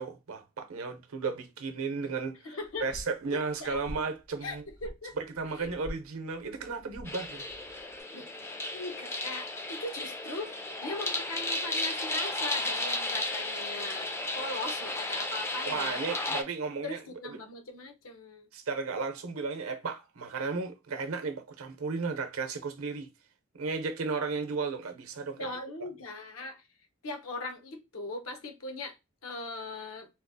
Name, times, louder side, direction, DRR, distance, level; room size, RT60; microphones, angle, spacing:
voice 1, 0.0-2.4 2.8-4.6 5.2-7.4 15.7-17.0 18.5-23.1 23.5-25.4, right 4 dB, 75° right, 0.7 m, -34 dB
voice 2, 2.4-2.9 3.3-3.8 4.4-5.2 5.6-5.7 8.1-8.3 8.7-10.6 10.8-16.0 16.8-18.5 25.4-26.6 27.0-29.0 29.2-30.1, left 2 dB, 80° left, 0.8 m, -39 dB
sound 1, 2.6-8.0, equal, 65° left, 1.3 m, -47 dB
sound 2, 7.1-16.4, left 2 dB, 10° left, 0.3 m, -34 dB
3.9 x 2.4 x 2.6 m
head